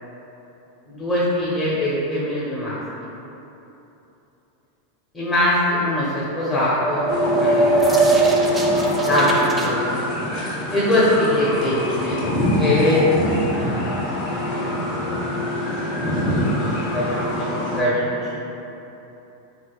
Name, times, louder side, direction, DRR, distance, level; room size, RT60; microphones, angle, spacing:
voice 1, 0.9-2.8 5.1-8.0 8.3-8.5 9.1-10.0 10.7-12.2 12.6-14.7 16.1-16.2 16.6-18.5, left 1 dB, 25° left, -9 dB, 0.9 m, -23 dB
sound 1, 6.4-9.7, right 3 dB, 15° right, 0.4 m, -21 dB
sound 2, 7.1-17.8, left 1 dB, 50° left, 1.1 m, -24 dB
4.0 x 3.2 x 2.3 m, 3.0 s
hypercardioid pair, 95°, 0 cm